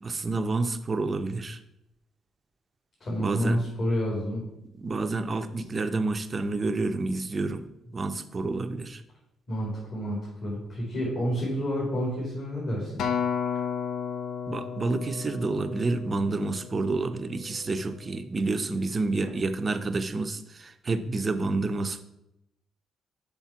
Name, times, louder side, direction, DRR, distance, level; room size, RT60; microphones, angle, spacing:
voice 1, 0.0-1.6 3.2-3.6 4.8-7.6 7.9-9.0 14.5-22.0, right 3 dB, 35° right, 9 dB, 0.6 m, -29 dB
voice 2, 3.0-4.4 9.5-13.0, equal, 50° left, -4 dB, 2.7 m, -29 dB
Acoustic guitar, 13.0-17.4 18.1-18.2, left 7 dB, 80° left, 0.7 m, -33 dB
5.9 x 5.3 x 5.7 m, 0.86 s
cardioid pair, 90°, 0 cm